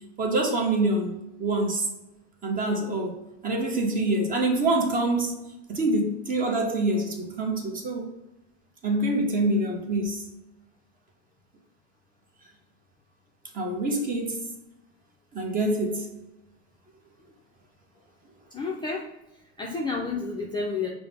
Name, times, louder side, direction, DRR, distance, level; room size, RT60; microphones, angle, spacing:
voice 1, 0.2-1.9 2.4-5.4 5.7-8.1 8.8-10.2 13.5-14.5 15.3-16.1, right 2 dB, 25° right, 0.8 m, -26 dB
voice 2, 18.5-19.1 19.6-20.9, left 4 dB, 15° left, 0.3 m, -30 dB
5.4 x 2.0 x 3.3 m
supercardioid pair, 120°, 34 cm